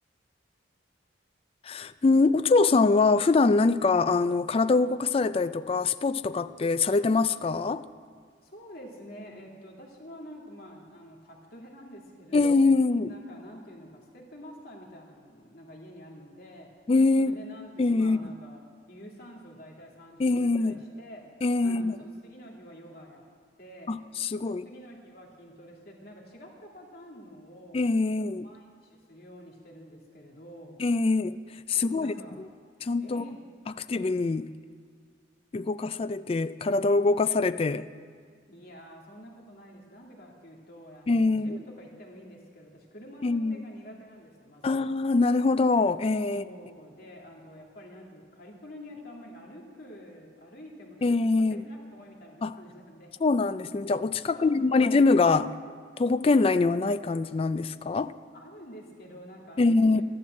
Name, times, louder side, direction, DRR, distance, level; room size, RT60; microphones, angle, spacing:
voice 1, 1.6-7.9 12.3-13.1 16.9-17.4 17.8-18.2 20.2-20.7 21.4-21.9 23.9-24.7 27.7-28.5 30.8-31.4 31.7-32.5 32.8-33.2 33.7-34.5 35.5-37.9 41.1-41.6 43.2-43.6 44.6-46.4 51.0-51.6 52.4-52.5 53.2-55.5 56.0-58.1 59.6-60.0, left 3 dB, 30° left, 0.3 m, -24 dB
voice 2, 8.4-12.6 13.0-16.7 17.2-18.6 18.9-21.3 21.6-23.2 23.6-23.9 24.3-27.9 28.4-30.8 31.7-32.4 33.0-33.4 38.5-44.8 46.3-53.1 54.3-55.2 58.3-60.0, equal, 55° left, 2.5 m, -48 dB
13.5 x 11.5 x 7.6 m
head